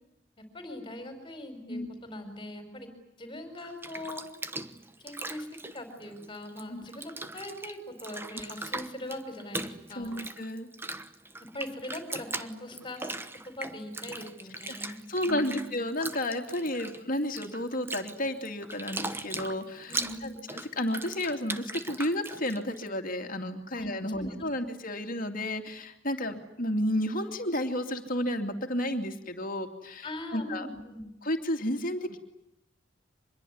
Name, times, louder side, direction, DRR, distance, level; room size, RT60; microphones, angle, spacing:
voice 1, 0.4-2.9 3.2-4.2 5.0-5.5 5.7-10.3 11.5-13.0 13.4-15.7 19.9-20.4 23.8-23.9 24.1-24.3 30.0-31.1, left 1 dB, 25° left, 7 dB, 4.9 m, -41 dB
Bathtub (filling or washing), 3.6-6.6 6.9-22.9, right 2 dB, 10° right, 1.1 m, -39 dB
voice 2, 10.0-10.7 14.8-19.9 20.2-30.7 31.2-32.2, left 1 dB, 45° left, 5 dB, 2.7 m, -32 dB
25.5 x 22.0 x 9.6 m, 0.85 s
head